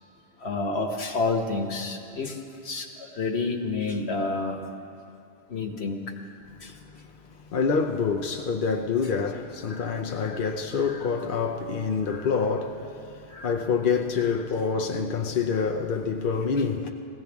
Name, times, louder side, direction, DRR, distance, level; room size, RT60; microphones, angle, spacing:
voice 1, 0.4-4.6 5.5-6.0 6.6-6.7 9.7-9.9 10.2-10.4 10.7-11.1 12.1-12.3 13.3-13.6, left 3 dB, 70° left, 1.5 m, -30 dB
voice 2, 7.5-12.9 13.4-16.9, left 5 dB, 55° left, 0.8 m, -26 dB
20.5 x 16.0 x 3.5 m
omnidirectional pair, 1.1 m